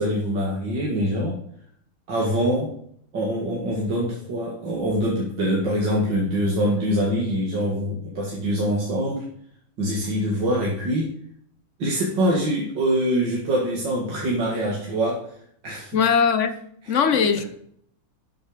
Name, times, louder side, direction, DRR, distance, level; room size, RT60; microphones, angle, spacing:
voice 1, 0.0-1.4 2.1-2.7 3.1-9.2 9.8-11.1 11.8-15.2 15.6-16.0 17.2-17.3, equal, 60° right, -3 dB, 2.7 m, -24 dB
voice 2, 15.9-16.6 16.9-17.4, left 6 dB, 50° left, 11 dB, 0.9 m, -20 dB
12.0 x 7.8 x 5.1 m, 0.65 s
omnidirectional pair, 2.2 m